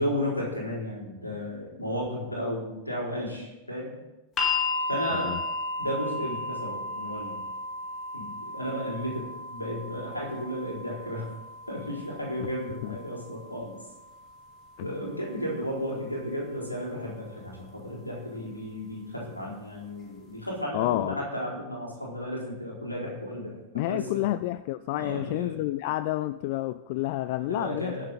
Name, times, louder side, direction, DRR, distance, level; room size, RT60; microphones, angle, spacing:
voice 1, 0.0-3.9 4.9-5.4 5.8-7.4 8.1-9.2 9.5-11.3 11.7-13.8 14.8-23.6 23.9-24.2 24.9-25.6 27.4-28.1, equal, 85° left, 4.1 m, -33 dB
sound 1, 4.4-16.5 17.5-17.6, left 3 dB, 30° left, 2.1 m, -35 dB
voice 2, 5.1-5.4 12.8-13.0 14.8-14.9 20.7-21.2 23.7-28.0, left 16 dB, 50° left, 0.3 m, -29 dB
21.0 x 7.5 x 4.1 m
figure-of-eight pair, 90°, 0 cm